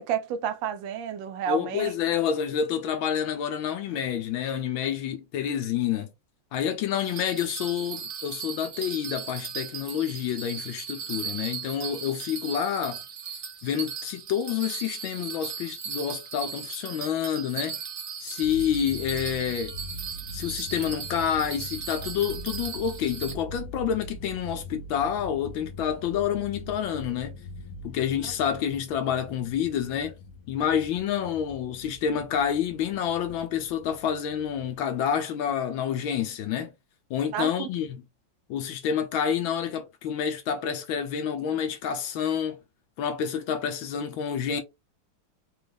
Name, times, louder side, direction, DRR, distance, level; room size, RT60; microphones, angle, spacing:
voice 1, 0.0-1.9 37.3-37.7, right 8 dB, 75° right, 1.2 m, -30 dB
voice 2, 1.5-6.1 6.5-13.0 13.6-17.8 18.2-19.7 20.3-27.4 27.8-30.1 30.5-36.7 37.1-38.0 38.5-42.6 43.0-44.6, left 8 dB, 85° left, 1.5 m, -28 dB
Bell, 7.0-23.3, right 7 dB, 55° right, 0.7 m, -37 dB
sound 1, 18.4-34.7, left 1 dB, 65° left, 1.2 m, -42 dB
4.1 x 2.4 x 3.4 m
omnidirectional pair, 2.2 m